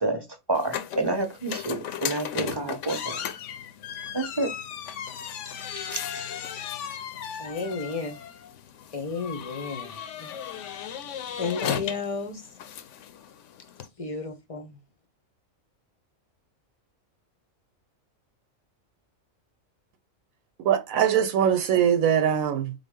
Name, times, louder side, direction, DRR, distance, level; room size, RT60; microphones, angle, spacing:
voice 1, 0.0-3.2 4.1-4.6 5.9-6.3, right 2 dB, 20° right, 0.8 m, -29 dB
sound 1, 0.5-13.9, left 9 dB, 70° left, 0.9 m, -36 dB
voice 2, 7.1-8.2 8.9-10.4 10.9-12.5 14.0-14.8, left 4 dB, 35° left, 0.5 m, -33 dB
voice 3, 20.6-22.7, right 9 dB, 85° right, 1.1 m, -22 dB
4.0 x 3.7 x 3.7 m
omnidirectional pair, 1.4 m